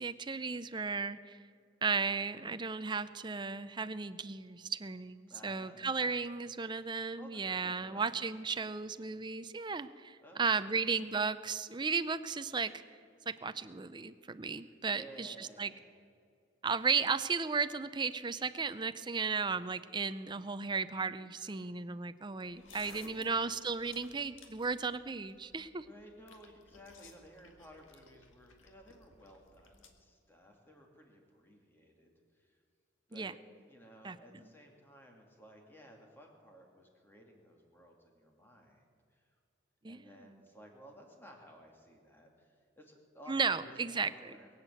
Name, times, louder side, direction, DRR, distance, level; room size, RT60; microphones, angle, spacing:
voice 1, 0.0-1.4 1.8-12.7 13.3-15.7 16.6-25.9 33.1-33.3 34.0-34.2 39.8-40.1 43.3-44.1, right 5 dB, 25° right, 12 dB, 0.5 m, -35 dB
voice 2, 5.3-6.2 7.2-8.1 10.2-10.8 14.7-15.9 22.6-23.3 25.8-32.6 33.1-39.3 39.9-44.5, equal, 10° left, 1 dB, 2.3 m, -56 dB
sound 1, 22.5-29.9, left 4 dB, 80° left, 1.7 m, -59 dB
22.0 x 8.2 x 7.8 m, 2.4 s
head